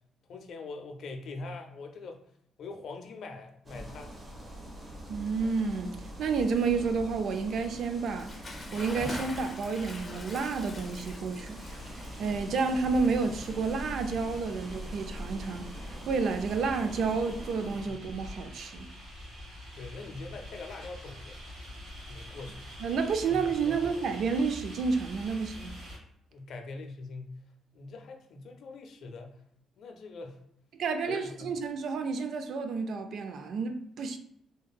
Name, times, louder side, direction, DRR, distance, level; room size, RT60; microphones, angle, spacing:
voice 1, 0.3-2.2 2.6-4.1 17.8-18.0 19.8-21.4 22.1-22.7 23.3-24.1 26.3-27.3 27.7-29.4 29.8-30.4 31.1-31.5, left 3 dB, 65° left, 0.4 m, -43 dB
sound 1, 3.7-17.8, right 1 dB, 30° right, 0.8 m, -43 dB
voice 2, 5.1-8.3 8.7-11.6 12.2-15.7 16.1-18.9 22.8-25.8 30.8-34.2, right 4 dB, 70° right, 0.3 m, -30 dB
Bathtub (filling or washing) / Splash splatter, 8.1-14.0, left 2 dB, 30° left, 0.7 m, -44 dB
sound 2, 11.6-26.0, left 1 dB, 85° right, 1.0 m, -46 dB
2.8 x 2.4 x 2.2 m
cardioid pair, 90°, 0 cm